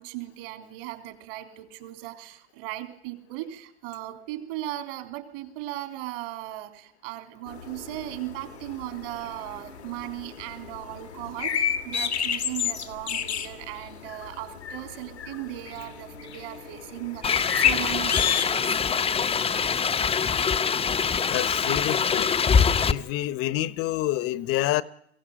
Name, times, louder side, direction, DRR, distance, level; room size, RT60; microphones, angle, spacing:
voice 1, 0.0-18.8, right 15 dB, 60° right, 3.6 m, -37 dB
sound 1, 7.5-18.4, left 8 dB, 85° left, 1.9 m, -31 dB
sound 2, 17.2-22.9, left 6 dB, 20° left, 0.9 m, -24 dB
voice 2, 21.3-22.3 22.9-24.8, left 14 dB, 45° left, 1.1 m, -27 dB
22.0 x 16.5 x 9.5 m
hypercardioid pair, 90°, 32 cm